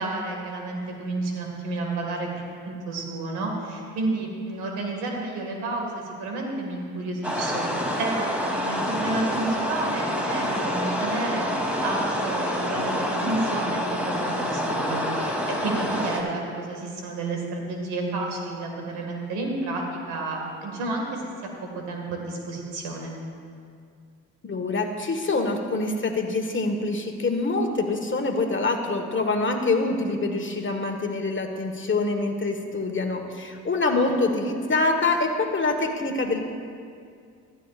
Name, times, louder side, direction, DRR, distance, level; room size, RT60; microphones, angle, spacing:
voice 1, 0.0-7.7 8.0-21.3 21.6-23.1, right 2 dB, 85° right, 1 dB, 2.1 m, -31 dB
sound 1, 7.2-16.2, equal, 5° right, 2.9 m, -27 dB
voice 2, 24.4-36.5, left 3 dB, 30° left, 4 dB, 1.5 m, -25 dB
15.0 x 13.0 x 2.5 m, 2.3 s
supercardioid pair, 60°, 38 cm